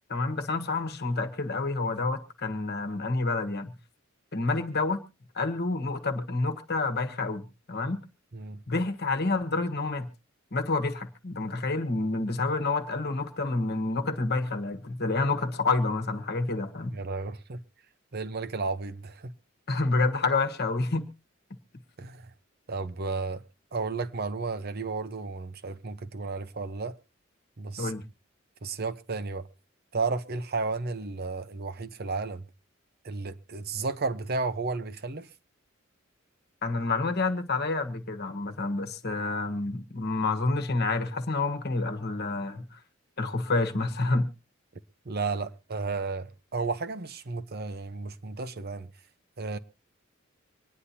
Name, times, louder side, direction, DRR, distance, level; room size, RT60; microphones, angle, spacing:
voice 1, 0.1-3.7 4.3-5.0 5.3-8.0 8.7-10.1 10.5-16.9 19.7-21.1 27.8-28.0 36.6-42.8 43.2-44.3, left 3 dB, 55° left, 1.3 m, -28 dB
voice 2, 16.9-17.6 18.1-19.3 22.0-22.2 22.7-23.4 23.7-26.9 27.6-27.9 28.6-29.5 29.9-32.5 33.0-35.3 45.1-48.9 49.4-49.6, right 4 dB, 50° right, 0.8 m, -33 dB
25.0 x 9.8 x 2.8 m
head